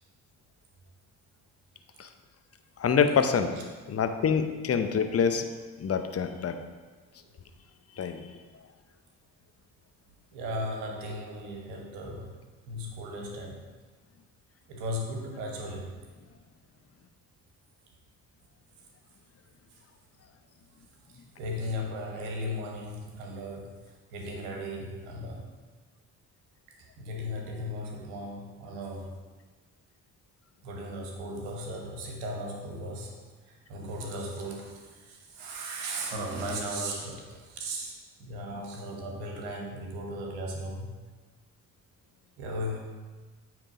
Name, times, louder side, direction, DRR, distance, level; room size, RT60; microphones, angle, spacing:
voice 1, 2.8-3.5 3.9-5.5 5.8-6.6 8.0-8.2, left 6 dB, 35° left, 7 dB, 0.8 m, -26 dB
voice 2, 10.3-12.4 12.7-13.7 14.7-16.0 21.1-25.5 26.7-29.2 30.6-33.2 33.4-37.9 38.2-40.9 42.4-42.8, equal, 85° right, 1 dB, 1.2 m, -36 dB
8.8 x 3.5 x 4.9 m, 1.4 s
hypercardioid pair, 45°, 40 cm